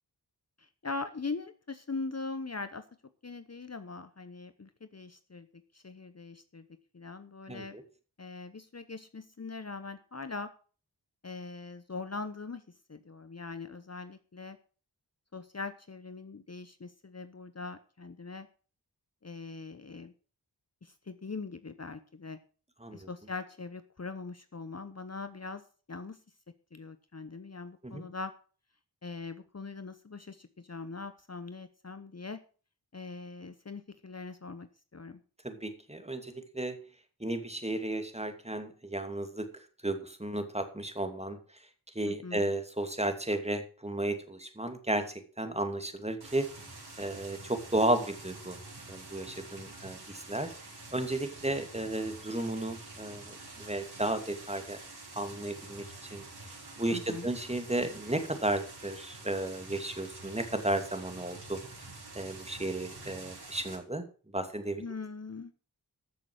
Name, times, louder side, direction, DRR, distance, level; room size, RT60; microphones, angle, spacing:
voice 1, 0.6-2.9 3.2-5.5 5.7-6.6 6.9-7.8 8.2-10.5 11.2-12.6 12.9-14.6 15.3-18.5 19.2-20.1 20.8-22.4 22.9-25.6 25.9-26.2 26.7-28.3 29.0-32.4 32.9-35.2 42.1-42.5 56.9-57.3 64.8-65.5, left 4 dB, 40° left, 11 dB, 1.0 m, -41 dB
voice 2, 7.5-7.8 22.8-23.1 27.8-28.1 35.4-36.8 37.2-39.5 39.8-41.4 41.9-46.5 47.0-48.6 48.9-50.5 50.9-54.8 55.1-55.8 56.1-56.3 56.8-61.6 62.1-64.0 64.3-64.8, right 1 dB, 15° right, 7 dB, 2.5 m, -33 dB
sound 1, 46.2-63.8, right 2 dB, 65° right, 5.3 m, -47 dB
14.0 x 6.8 x 6.3 m, 0.39 s
wide cardioid pair, 55°, 41 cm